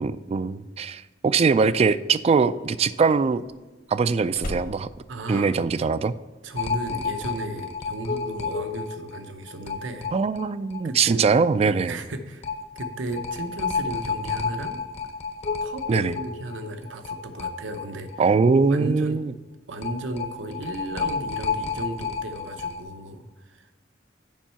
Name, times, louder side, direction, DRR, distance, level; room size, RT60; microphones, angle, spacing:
voice 1, 0.0-3.4 3.9-4.9 5.3-6.1 10.1-12.0 15.9-16.1 18.2-19.3, right 5 dB, 35° right, 15 dB, 0.3 m, -22 dB
Slam, 2.0-6.1 6.4-6.8, left 1 dB, 50° left, 1.1 m, -39 dB
voice 2, 5.1-5.6 6.4-10.1 10.8-11.3 11.7-12.5 12.8-14.8 15.6-15.8 16.1-18.1 18.7-19.2 19.7-23.7, right 2 dB, 80° right, 8 dB, 0.8 m, -34 dB
sound 1, 6.6-10.8 11.1-11.2 11.4-11.5 12.4-18.2 18.5-18.6 19.8-22.8, left 5 dB, 35° left, 0.7 m, -30 dB
7.4 x 5.4 x 5.7 m, 1.2 s
head